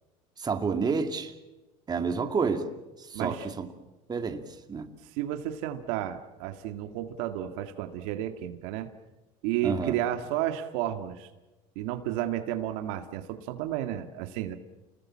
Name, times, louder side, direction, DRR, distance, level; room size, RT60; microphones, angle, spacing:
voice 1, 0.4-1.3 1.9-2.7 3.0-3.7 4.1-4.4 4.7-4.9 9.6-10.0, right 5 dB, 25° right, 6 dB, 2.6 m, -29 dB
voice 2, 3.1-3.5 5.1-8.9 9.4-11.3 11.8-14.6, right 12 dB, 75° right, 7 dB, 2.1 m, -32 dB
29.5 x 20.5 x 7.5 m, 1.1 s
supercardioid pair, 115°, 17 cm